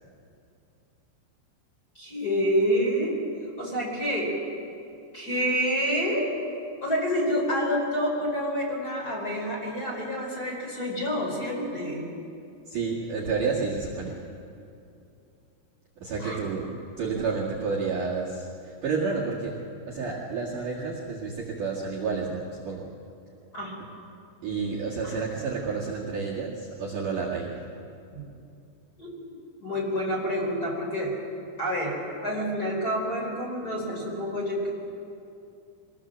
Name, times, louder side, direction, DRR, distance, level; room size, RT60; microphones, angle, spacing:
voice 1, 1.9-3.2 3.6-4.3 5.1-6.3 6.8-12.1 16.2-16.4 23.5-23.7 25.0-25.2 28.1-28.2 29.0-29.1 29.6-31.1 31.6-34.7, equal, 20° left, -2 dB, 4.2 m, -28 dB
voice 2, 12.7-14.1 16.0-16.7 17.0-19.5 19.9-22.9 24.4-27.7, right 4 dB, 50° right, -6 dB, 3.0 m, -30 dB
24.0 x 19.0 x 7.4 m, 2.6 s
omnidirectional pair, 5.6 m